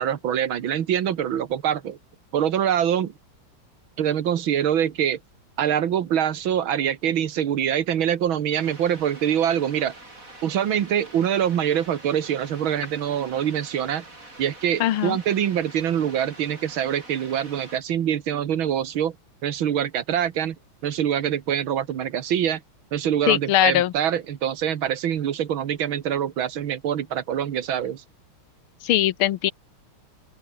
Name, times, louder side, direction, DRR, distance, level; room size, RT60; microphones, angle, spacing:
voice 1, 0.0-2.0 2.3-3.1 4.0-5.2 5.6-9.9 10.4-14.0 14.4-19.2 19.4-20.6 20.8-22.6 22.9-28.0, right 9 dB, 70° right, 2.1 m, -24 dB
sound 1, 8.5-17.8, right 2 dB, 40° right, 6.7 m, -46 dB
voice 2, 14.8-15.2 23.3-23.9 28.8-29.5, left 13 dB, 85° left, 1.7 m, -20 dB
open air
omnidirectional pair, 2.3 m